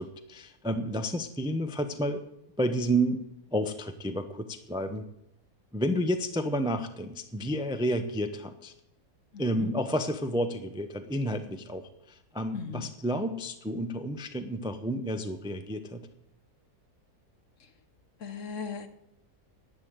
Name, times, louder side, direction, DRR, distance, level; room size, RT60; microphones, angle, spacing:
voice 1, 0.0-2.3 2.6-3.2 3.5-5.1 5.7-8.7 9.4-16.1, right 1 dB, 5° right, 8 dB, 0.5 m, -31 dB
voice 2, 9.3-9.7 12.5-12.9 17.6-17.7 18.2-18.9, left 6 dB, 55° left, 10 dB, 1.2 m, -38 dB
10.5 x 9.2 x 8.1 m, 0.83 s
omnidirectional pair, 1.7 m